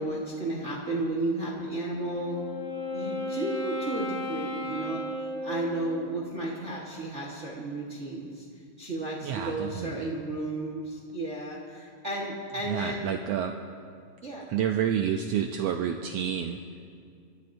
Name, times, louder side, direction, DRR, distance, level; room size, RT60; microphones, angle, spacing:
voice 1, 0.0-2.4 2.9-8.4 8.8-13.2 14.2-14.4, right 2 dB, 50° right, -3 dB, 0.8 m, -33 dB
Wind instrument woodwind instrument, 1.8-6.1, left 1 dB, 25° left, 2.3 m, -34 dB
voice 2, 9.2-9.9 12.7-13.5 14.5-16.6, right 9 dB, 80° right, 5 dB, 1.5 m, -29 dB
27.0 x 13.5 x 2.6 m, 2.2 s
omnidirectional pair, 3.4 m